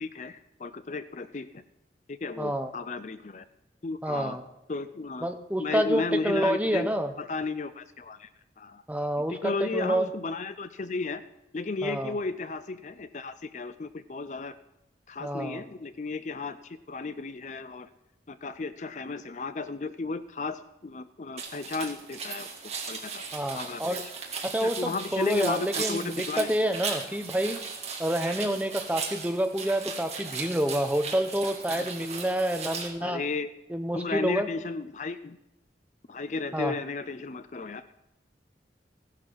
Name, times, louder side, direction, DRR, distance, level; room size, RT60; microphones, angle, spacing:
voice 1, 0.0-1.6 2.1-3.5 3.8-4.4 4.7-5.3 5.6-6.9 7.2-8.3 8.6-8.8 9.3-11.2 11.5-14.6 15.1-17.9 18.3-23.2 23.5-24.0 24.6-26.5 31.7-31.9 33.0-33.5 33.9-35.4 36.1-37.8, left 3 dB, 40° left, 12 dB, 0.5 m, -34 dB
voice 2, 2.4-2.7 4.0-4.4 5.2-7.1 8.9-10.1 11.8-12.2 15.2-15.6 23.3-24.0 24.4-27.6 28.0-33.2 33.7-34.5 36.5-36.7, right 1 dB, 10° right, 6 dB, 0.9 m, -28 dB
sound 1, 21.4-32.9, right 5 dB, 35° right, 2.2 m, -37 dB
16.0 x 11.5 x 4.7 m, 0.90 s
head